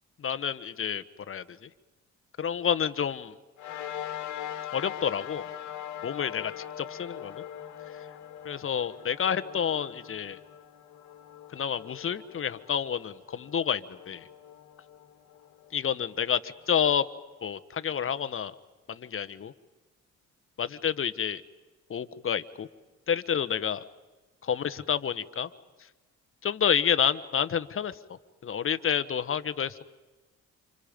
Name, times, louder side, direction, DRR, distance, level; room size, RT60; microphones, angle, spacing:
voice 1, 0.2-1.7 2.4-3.3 4.7-5.5 6.0-7.4 8.4-10.4 11.5-14.3 15.7-17.1 17.4-18.5 18.9-19.5 20.6-21.4 21.9-22.7 23.1-23.8 24.4-25.5 26.4-29.9, left 8 dB, 45° left, 13 dB, 1.3 m, -29 dB
sound 1, 3.6-16.3, left 10 dB, 70° left, 1.9 m, -42 dB
29.5 x 27.5 x 5.3 m, 1.2 s
cardioid pair, 90°, 30 cm